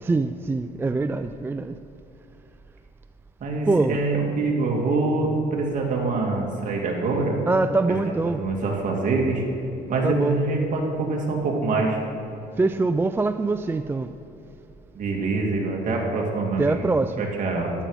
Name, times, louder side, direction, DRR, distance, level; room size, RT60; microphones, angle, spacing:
voice 1, 0.0-1.8 3.7-4.0 7.5-8.4 10.0-10.4 12.6-14.1 16.6-17.3, right 3 dB, 15° right, 10 dB, 0.3 m, -23 dB
voice 2, 3.4-7.4 7.9-9.4 9.9-12.0 14.9-16.8 17.2-17.7, right 3 dB, 50° right, -1 dB, 2.7 m, -25 dB
14.0 x 11.5 x 5.1 m, 2.9 s
cardioid pair, 110°, 17 cm